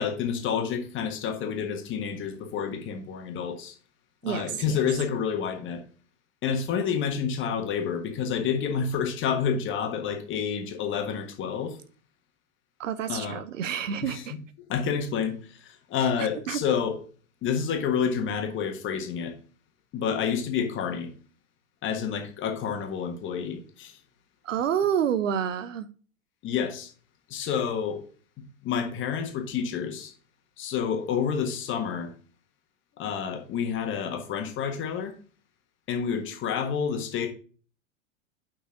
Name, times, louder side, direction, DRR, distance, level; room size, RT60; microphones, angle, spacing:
voice 1, 0.0-3.7 4.2-5.8 6.4-11.8 13.1-13.4 14.0-14.4 14.7-17.0 17.4-19.3 19.9-21.1 21.8-24.0 26.4-26.9 27.3-28.0 28.4-30.1 30.6-32.1 33.0-35.1 35.9-37.3, left 7 dB, 30° left, 1.5 m, -29 dB
voice 2, 4.2-4.8 12.8-14.4 16.5-16.6 24.4-25.9, right 8 dB, 65° right, 0.9 m, -28 dB
8.5 x 5.7 x 3.8 m
figure-of-eight pair, 95°, 41 cm